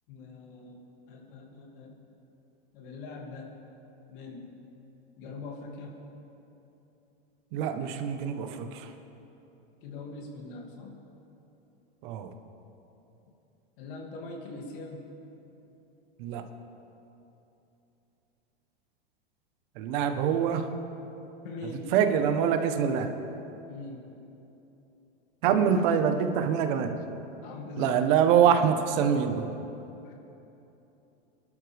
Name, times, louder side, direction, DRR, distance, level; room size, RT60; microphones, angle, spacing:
voice 1, 0.1-0.8 1.1-1.9 2.7-3.5 4.1-4.5 5.2-6.0 9.8-11.0 13.8-15.1 21.4-21.9 23.7-24.0 25.5-26.0 27.4-28.0 30.0-30.1, left 3 dB, 60° left, 0 dB, 2.8 m, -42 dB
voice 2, 7.5-8.9 12.0-12.3 16.2-16.5 19.7-20.7 21.9-23.1 25.4-27.0 27.8-29.6, right 8 dB, 55° right, 7 dB, 1.3 m, -25 dB
24.5 x 12.0 x 3.6 m, 3.0 s
supercardioid pair, 135°, 30 cm